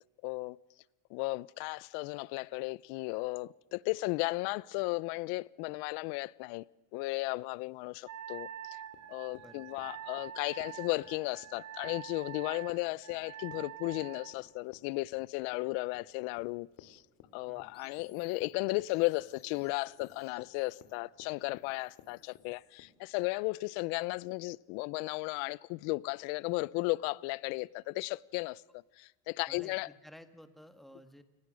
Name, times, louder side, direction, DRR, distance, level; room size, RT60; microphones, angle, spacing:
voice 1, 0.2-0.6 1.1-6.6 6.9-8.8 9.1-17.0 17.3-29.9, left 23 dB, 80° left, 0.7 m, -35 dB
Wind instrument woodwind instrument, 8.1-14.4, right 10 dB, 50° right, 1.4 m, -46 dB
Run, 8.9-22.9, left 10 dB, 65° left, 2.5 m, -58 dB
voice 2, 9.4-9.8 17.5-17.6 29.5-31.2, equal, ahead, 1.5 m, -54 dB
sound 1, 17.7-22.8, left 7 dB, 25° left, 1.9 m, -66 dB
29.0 x 19.0 x 6.3 m
cardioid pair, 135°, 36 cm